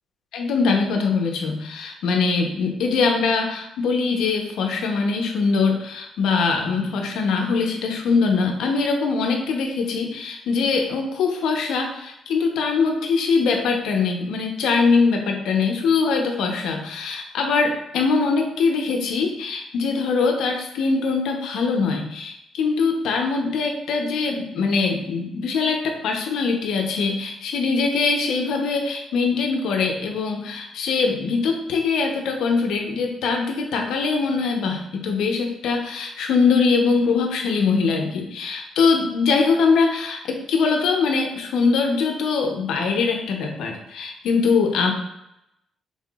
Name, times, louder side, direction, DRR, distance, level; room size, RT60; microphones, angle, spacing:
voice 1, 0.3-44.9, left 4 dB, 75° left, 3 dB, 0.8 m, -22 dB
5.7 x 3.7 x 2.4 m, 0.83 s
cardioid pair, 180°, 0 cm